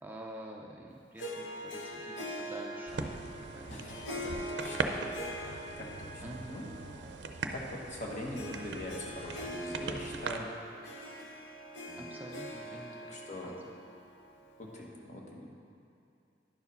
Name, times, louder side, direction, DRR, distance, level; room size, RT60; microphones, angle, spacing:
voice 1, 0.0-3.0 3.4-4.1 6.2-6.6 12.0-13.6, right 1 dB, 10° right, -1 dB, 0.4 m, -48 dB
Harp, 1.2-14.8, equal, 75° left, 0.9 m, -43 dB
sound 1, 2.9-10.4, right 4 dB, 65° right, 0.5 m, -40 dB
voice 2, 4.2-4.9 5.8-6.7 7.5-10.5 11.9-12.2 13.1-13.5 14.6-15.6, left 1 dB, 45° left, -2 dB, 1.3 m, -42 dB
10.5 x 4.8 x 5.4 m, 2.6 s
head